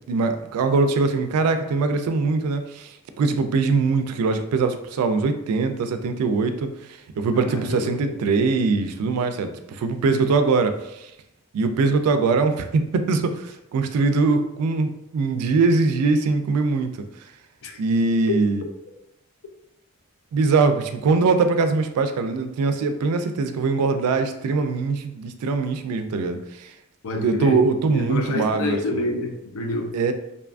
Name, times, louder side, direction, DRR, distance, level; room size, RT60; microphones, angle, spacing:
voice 1, 0.1-6.7 7.2-11.1 11.5-16.9 17.8-18.6 20.3-26.7 27.2-28.8 29.9-30.1, right 4 dB, 80° right, 11 dB, 0.3 m, -22 dB
voice 2, 7.3-8.2 17.6-17.8 18.3-18.7 27.0-27.6 27.9-29.9, left 2 dB, 65° left, 4 dB, 0.4 m, -28 dB
2.6 x 2.2 x 2.4 m, 0.86 s
head